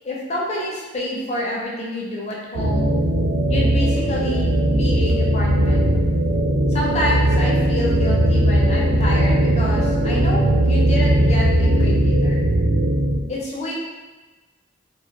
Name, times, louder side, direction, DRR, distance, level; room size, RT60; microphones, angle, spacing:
voice 1, 0.0-2.9 3.5-5.9 6.7-12.4 13.3-13.7, left 1 dB, 35° left, -3 dB, 0.4 m, -27 dB
sound 1, 2.5-13.2, right 1 dB, 60° right, 0.3 m, -18 dB
2.2 x 2.1 x 2.8 m, 1.2 s
head